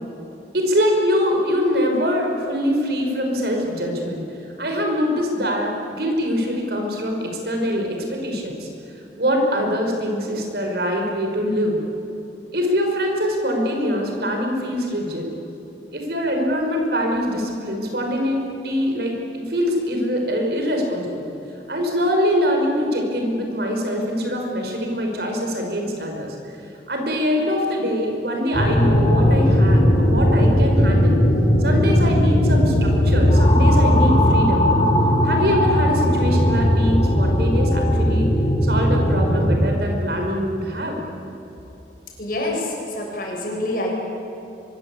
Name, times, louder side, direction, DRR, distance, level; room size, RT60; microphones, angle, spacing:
voice 1, 0.5-4.2 4.6-8.7 9.2-11.8 12.5-15.3 15.9-19.2 19.5-21.2 21.7-31.2 31.6-34.7 35.2-38.3 38.6-41.0, equal, 60° right, 2 dB, 5.4 m, -23 dB
sound 1, 28.5-39.7, equal, 35° left, 4.3 m, -17 dB
voice 2, 42.2-43.9, left 1 dB, 50° left, -1 dB, 7.1 m, -26 dB
24.5 x 23.0 x 8.5 m, 3.0 s
head